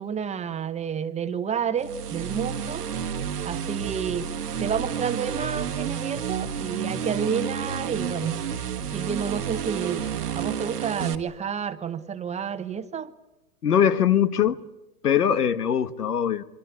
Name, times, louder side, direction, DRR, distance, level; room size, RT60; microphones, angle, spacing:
voice 1, 0.0-2.9 3.4-4.3 4.6-8.4 8.9-10.0 10.3-13.1, right 7 dB, 15° right, 11 dB, 1.0 m, -30 dB
sound 1, 1.8-11.2, right 8 dB, 90° right, 1.9 m, -30 dB
voice 2, 13.6-14.6 15.0-16.4, left 9 dB, 90° left, 15 dB, 1.3 m, -21 dB
26.5 x 23.0 x 8.3 m, 0.94 s
hypercardioid pair, 120°, 45 cm